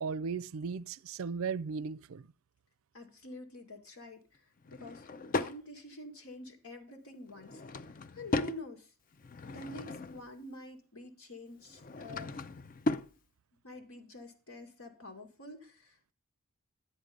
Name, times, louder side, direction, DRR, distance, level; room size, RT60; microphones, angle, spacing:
voice 1, 0.0-2.3, right 5 dB, 70° right, 0.4 m, -36 dB
voice 2, 2.9-7.6 8.1-8.9 9.5-12.5 13.6-16.1, left 1 dB, 80° left, 2.2 m, -47 dB
Drawer open or close / Wood, 4.6-5.6 7.3-8.6 9.1-10.3 11.6-13.1, left 2 dB, 40° left, 0.5 m, -36 dB
11.5 x 8.1 x 5.1 m
head